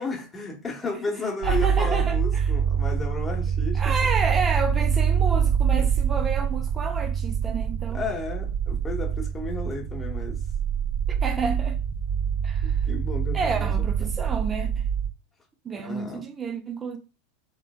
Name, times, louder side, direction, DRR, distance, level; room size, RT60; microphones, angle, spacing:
voice 1, 0.0-3.9 5.8-5.9 7.9-10.4 12.6-14.1 15.7-16.3, left 3 dB, 15° left, 1.3 m, -33 dB
voice 2, 1.4-2.4 3.7-8.0 11.1-11.8 12.4-12.8 13.3-14.9 15.6-17.0, right 4 dB, 20° right, 0.8 m, -30 dB
sound 1, 1.4-15.1, right 7 dB, 50° right, 1.0 m, -25 dB
3.8 x 3.1 x 2.3 m
hypercardioid pair, 95°, 0 cm